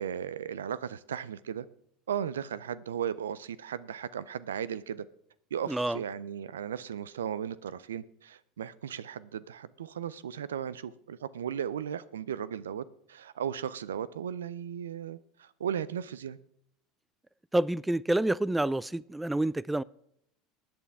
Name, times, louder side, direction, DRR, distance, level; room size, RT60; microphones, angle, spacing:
voice 1, 0.0-1.7 2.1-5.0 5.5-16.4, right 8 dB, 85° right, 0.5 m, -36 dB
voice 2, 5.7-6.0 17.5-19.8, right 1 dB, 10° right, 0.4 m, -28 dB
20.5 x 8.8 x 3.5 m
hypercardioid pair, 80°, 0 cm